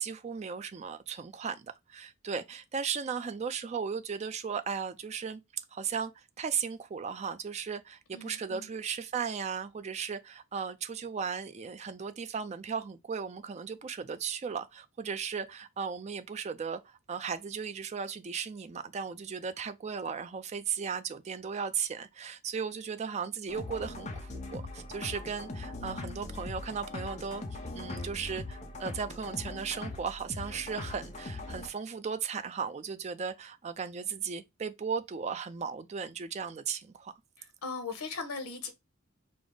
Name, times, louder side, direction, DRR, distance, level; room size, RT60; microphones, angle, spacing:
voice 1, 0.0-5.4 5.7-27.4 27.7-37.1, right 6 dB, 30° right, 0.3 m, -36 dB
voice 2, 8.1-8.7 37.4-38.7, left 4 dB, 85° left, 1.0 m, -39 dB
sound 1, 23.5-31.7, left 2 dB, 30° left, 0.7 m, -40 dB
5.0 x 2.0 x 3.8 m
head